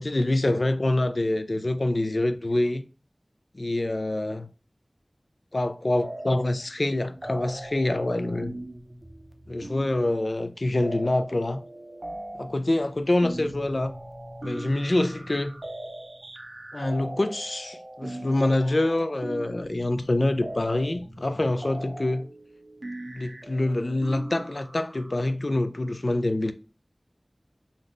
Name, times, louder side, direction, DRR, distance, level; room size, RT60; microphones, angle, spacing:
voice 1, 0.0-2.8 3.5-4.5 5.5-8.6 9.5-11.6 12.4-13.9 14.4-15.5 16.7-22.3 23.1-26.5, left 1 dB, 60° left, 0.4 m, -26 dB
sound 1, 6.0-6.6 6.9-25.2, right 1 dB, 55° right, 0.4 m, -40 dB
2.7 x 2.4 x 3.5 m
wide cardioid pair, 45°, 0 cm